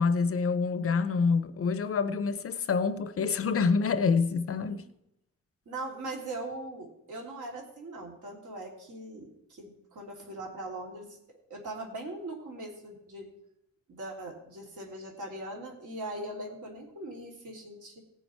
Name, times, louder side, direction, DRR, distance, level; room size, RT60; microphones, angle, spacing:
voice 1, 0.0-4.8, left 5 dB, 45° left, 0.6 m, -27 dB
voice 2, 5.7-11.2 11.5-13.3 13.9-18.0, right 2 dB, 75° right, 3.0 m, -40 dB
17.0 x 7.1 x 4.4 m
wide cardioid pair, 160°, 31 cm